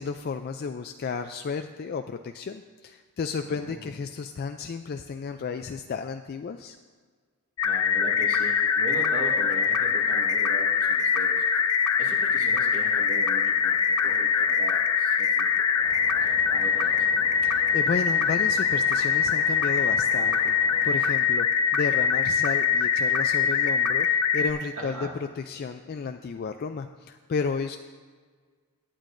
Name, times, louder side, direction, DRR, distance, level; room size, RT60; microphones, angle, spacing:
voice 1, 0.0-6.8 17.4-20.5 20.8-25.1 25.4-27.8, left 5 dB, 45° left, 7 dB, 0.3 m, -32 dB
voice 2, 3.4-3.9 7.6-11.5 12.0-15.8 16.1-17.2 24.8-25.2, right 2 dB, 70° right, -2 dB, 2.0 m, -39 dB
sound 1, 7.6-24.5, left 6 dB, 85° left, 0.7 m, -23 dB
sound 2, 15.8-21.1, right 2 dB, 55° right, 1.0 m, -45 dB
17.0 x 9.0 x 2.6 m, 1.6 s
head